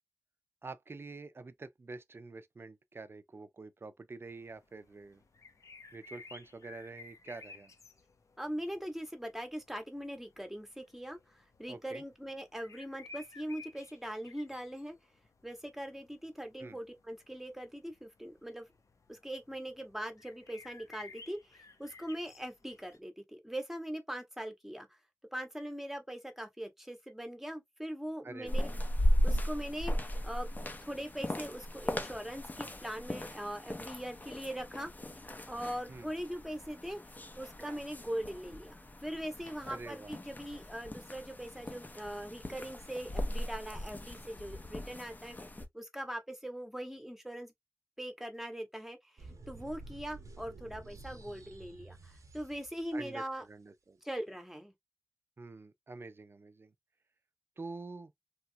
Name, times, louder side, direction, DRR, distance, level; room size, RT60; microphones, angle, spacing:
voice 1, 0.6-5.2 5.9-7.7 11.7-12.0 16.6-16.8 28.2-28.7 35.9-36.1 39.7-40.1 52.9-54.0 55.4-56.7 57.6-58.1, right 3 dB, 45° right, 0.5 m, -47 dB
sound 1, 4.2-23.0, left 4 dB, 75° left, 0.6 m, -56 dB
voice 2, 8.4-15.0 15.4-18.7 19.1-24.9 25.3-28.7 29.2-30.5 30.8-34.9 35.2-37.0 37.3-38.8 39.0-45.4 45.7-47.5 48.0-53.5 54.0-54.7, equal, 5° right, 0.8 m, -41 dB
sound 2, 28.5-45.6, equal, 30° left, 0.5 m, -37 dB
sound 3, 49.2-53.1, right 2 dB, 80° right, 0.7 m, -51 dB
3.1 x 2.3 x 2.7 m
wide cardioid pair, 85°, 5 cm